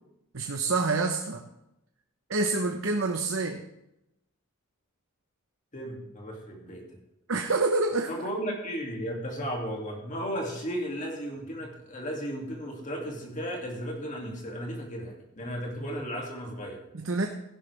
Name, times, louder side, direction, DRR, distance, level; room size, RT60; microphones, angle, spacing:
voice 1, 0.3-1.4 2.3-3.6 7.3-8.1 16.9-17.3, right 3 dB, 65° right, 4 dB, 0.9 m, -27 dB
voice 2, 5.7-6.8 8.1-16.8, equal, 35° left, 0 dB, 2.4 m, -35 dB
15.5 x 11.5 x 3.4 m, 0.85 s
head